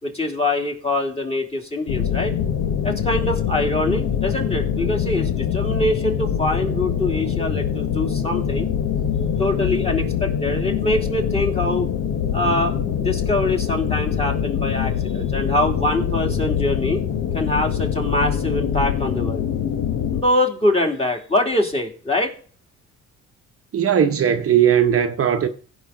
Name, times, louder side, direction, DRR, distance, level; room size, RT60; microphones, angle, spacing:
voice 1, 0.0-2.3 2.8-8.7 9.4-11.9 12.3-17.0 17.3-19.4 20.1-22.3, left 1 dB, 20° left, 2.8 m, -24 dB
sound 1, 1.9-20.2, left 8 dB, 75° left, 1.4 m, -24 dB
voice 2, 23.7-25.5, right 9 dB, 50° right, 0.9 m, -18 dB
16.5 x 5.6 x 3.8 m
cardioid pair, 90°, 30 cm